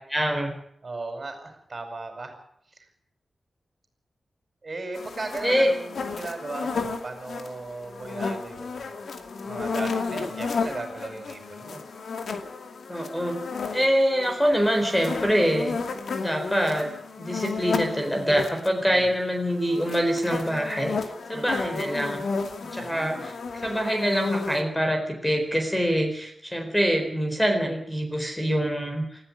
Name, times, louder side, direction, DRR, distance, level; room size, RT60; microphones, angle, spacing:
voice 1, 0.1-0.5 5.4-5.7 12.9-13.4 13.7-15.7 16.2-16.9 17.2-21.0 21.3-22.2 22.7-23.4 23.6-29.0, equal, 5° left, 4 dB, 4.2 m, -24 dB
voice 2, 0.8-2.3 2.8-2.9 4.6-8.9 9.5-11.8 18.8-19.1 21.3-21.7 22.8-23.3, right 3 dB, 40° right, 6 dB, 5.7 m, -37 dB
sound 1, 4.9-18.7 19.5-24.6, left 4 dB, 75° left, 2.5 m, -33 dB
19.5 x 14.5 x 9.7 m, 0.71 s
wide cardioid pair, 110°, 0 cm